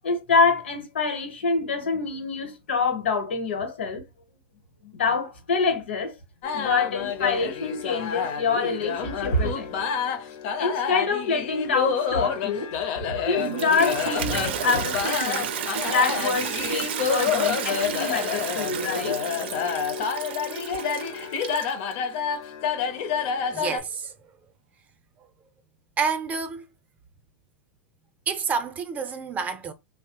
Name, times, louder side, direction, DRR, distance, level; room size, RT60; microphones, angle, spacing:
voice 1, 0.0-4.0 4.8-6.1 6.5-9.7 10.6-15.5 15.9-19.2, left 4 dB, 85° left, 1.0 m, -26 dB
sound 1, 6.4-23.8, left 7 dB, 55° left, 0.6 m, -29 dB
Toilet flush, 13.3-21.9, right 9 dB, 70° right, 0.5 m, -32 dB
voice 2, 23.5-24.1 26.0-26.6 28.3-29.7, right 5 dB, 25° right, 0.6 m, -28 dB
3.2 x 2.0 x 2.9 m
hypercardioid pair, 110°, 6 cm